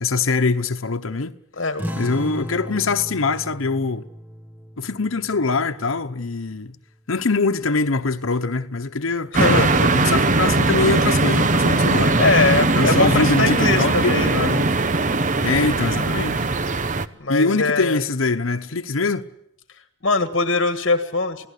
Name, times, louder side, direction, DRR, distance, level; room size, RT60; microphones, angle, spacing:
voice 1, 0.0-1.4 2.0-4.1 4.8-6.8 7.1-12.2 12.7-14.7 15.4-16.5 17.3-19.3, left 3 dB, 90° left, 1.0 m, -23 dB
voice 2, 1.6-2.0 9.3-9.9 12.2-14.5 17.2-18.0 20.0-21.5, left 3 dB, 65° left, 1.7 m, -21 dB
sound 1, 1.8-6.8, equal, 10° right, 1.7 m, -36 dB
sound 2, 9.3-17.1, right 3 dB, 40° right, 0.9 m, -19 dB
28.5 x 17.5 x 8.3 m
head